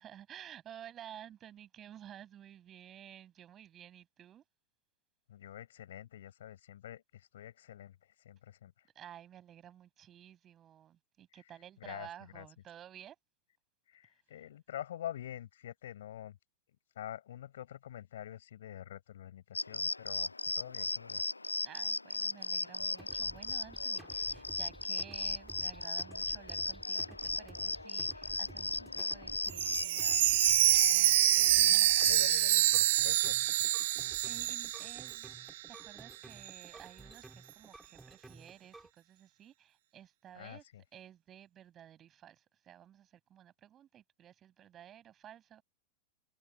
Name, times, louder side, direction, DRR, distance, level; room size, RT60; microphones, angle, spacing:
voice 1, 0.0-4.4 8.9-13.2 21.6-30.4 30.9-31.9 34.2-35.3 35.7-40.6 40.9-45.6, right 10 dB, 30° right, 7.8 m, -53 dB
voice 2, 5.3-8.9 11.8-12.5 13.9-16.4 16.9-21.2 31.4-33.4 40.3-40.8, left 11 dB, 60° left, 7.1 m, -47 dB
sound 1, 19.5-32.4, left 3 dB, 80° left, 0.5 m, -37 dB
sound 2, 22.8-38.9, right 2 dB, 10° right, 5.9 m, -54 dB
Chime, 29.5-35.5 35.8-35.9 36.4-36.5, right 16 dB, 55° right, 0.6 m, -27 dB
figure-of-eight pair, 90°, 0 cm